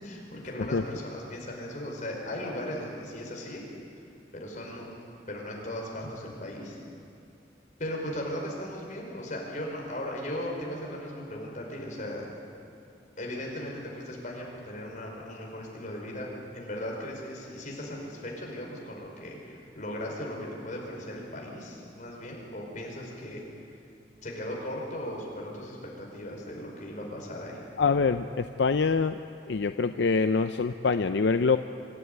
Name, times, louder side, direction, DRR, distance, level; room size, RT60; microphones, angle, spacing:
voice 1, 0.0-3.6 4.3-4.9 5.3-6.8 7.8-12.3 13.2-16.3 16.5-23.4 24.2-27.6, left 1 dB, 45° left, -1 dB, 5.2 m, -37 dB
voice 2, 27.8-29.2 29.5-31.6, left 4 dB, 80° left, 9 dB, 0.5 m, -25 dB
25.5 x 13.0 x 9.4 m, 2.5 s
head